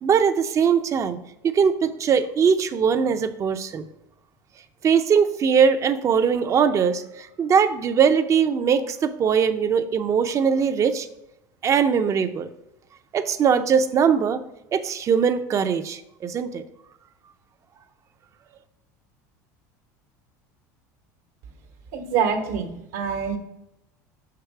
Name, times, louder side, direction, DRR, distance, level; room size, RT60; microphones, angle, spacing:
voice 1, 0.0-1.2 1.4-3.9 4.8-11.1 11.6-12.5 13.1-14.4 14.7-16.6, right 6 dB, 35° right, 10 dB, 0.6 m, -21 dB
voice 2, 21.9-23.4, right 7 dB, 75° right, 5 dB, 1.2 m, -25 dB
6.3 x 4.8 x 4.7 m, 0.87 s
supercardioid pair, 100°, 9 cm